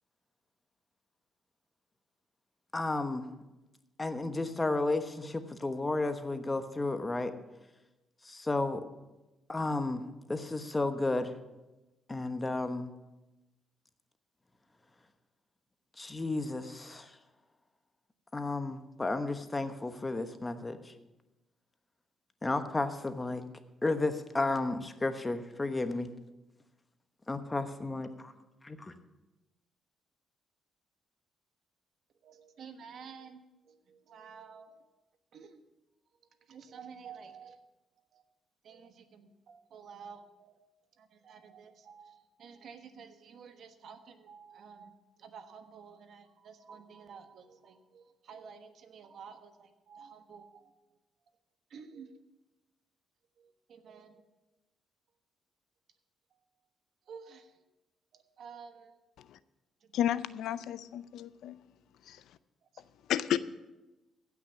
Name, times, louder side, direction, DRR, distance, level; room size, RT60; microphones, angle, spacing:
voice 1, 2.7-3.3 4.0-7.3 8.2-8.8 9.5-11.4 12.1-12.9 16.0-17.2 18.3-20.9 22.4-23.4 23.8-26.1 27.3-28.3 28.6-28.9, left 2 dB, 20° left, 9 dB, 1.1 m, -33 dB
voice 2, 32.2-34.8 35.3-35.6 36.4-37.7 38.1-38.2 38.6-40.6 41.0-50.7 51.7-52.2 53.4-54.2 57.1-57.6 58.1-58.9 59.8-60.0 62.7-62.8, right 6 dB, 65° right, 8 dB, 1.2 m, -51 dB
voice 3, 59.9-61.5 62.1-62.2 63.1-63.4, left 11 dB, 80° left, 15 dB, 0.5 m, -32 dB
15.5 x 6.1 x 7.3 m, 1.0 s
cardioid pair, 90°, 0 cm